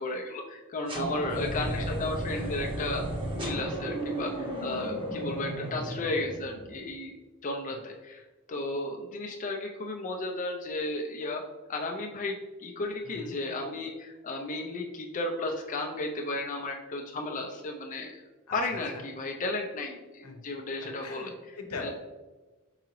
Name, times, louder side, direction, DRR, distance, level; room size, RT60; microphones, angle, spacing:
voice 1, 0.0-3.0 3.3-7.1 7.4-8.2 8.5-11.4 11.7-18.2 18.5-21.3 21.8-21.9, left 2 dB, 35° left, 1 dB, 0.4 m, -34 dB
sound 1, 0.9-6.8, right 1 dB, 25° right, 0.8 m, -34 dB
voice 2, 1.6-2.0 2.3-2.6 4.6-4.9 7.7-7.8 13.0-13.3 18.5-19.0 20.2-20.4 21.0-21.9, left 3 dB, 80° left, 4 dB, 0.8 m, -42 dB
4.7 x 3.8 x 3.0 m, 1.2 s
head